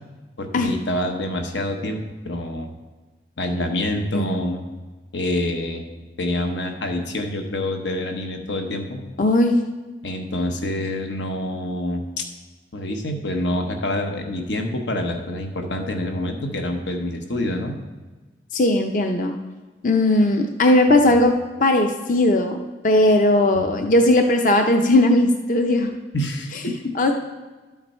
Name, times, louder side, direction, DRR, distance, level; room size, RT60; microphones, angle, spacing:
voice 1, 0.4-2.7 3.4-4.6 5.1-5.8 6.2-9.0 10.0-12.3 12.7-17.8 21.1-21.2 23.5-23.6 26.1-26.9, left 1 dB, 90° left, 4 dB, 1.1 m, -26 dB
voice 2, 9.2-9.6 18.5-19.4 19.8-21.3 21.6-22.6 22.8-25.9 26.9-27.1, left 1 dB, 45° left, 4 dB, 0.5 m, -17 dB
12.0 x 5.8 x 4.3 m, 1.3 s
head